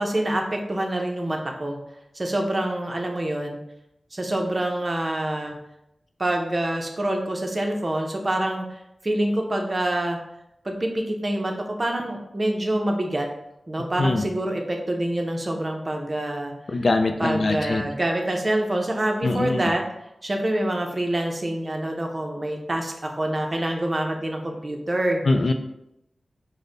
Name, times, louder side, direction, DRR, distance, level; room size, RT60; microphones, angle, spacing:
voice 1, 0.0-1.8 2.1-3.6 4.1-5.6 6.2-8.6 9.0-10.2 10.6-11.5 11.8-13.3 13.7-16.5 17.2-19.8 20.2-25.2, right 1 dB, 30° right, 2 dB, 0.6 m, -26 dB
voice 2, 16.7-17.8 19.2-19.6 25.2-25.5, left 2 dB, 55° left, 6 dB, 0.4 m, -22 dB
5.3 x 2.1 x 3.9 m, 0.83 s
wide cardioid pair, 115°, 0 cm